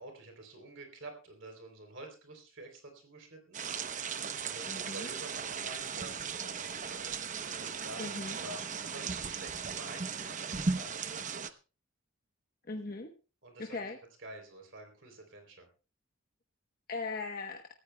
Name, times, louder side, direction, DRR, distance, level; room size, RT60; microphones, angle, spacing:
voice 1, 0.0-3.6 3.9-7.2 7.5-11.6 13.4-13.9 14.2-15.7, right 2 dB, 65° right, 3 dB, 3.4 m, -49 dB
sound 1, 3.5-11.5, right 5 dB, 40° right, 0.8 m, -37 dB
voice 2, 4.7-5.1 8.0-8.4 12.7-13.1 13.6-14.0 16.9-17.7, left 3 dB, 45° left, 4 dB, 1.0 m, -39 dB
25.5 x 14.5 x 2.3 m, 0.34 s
head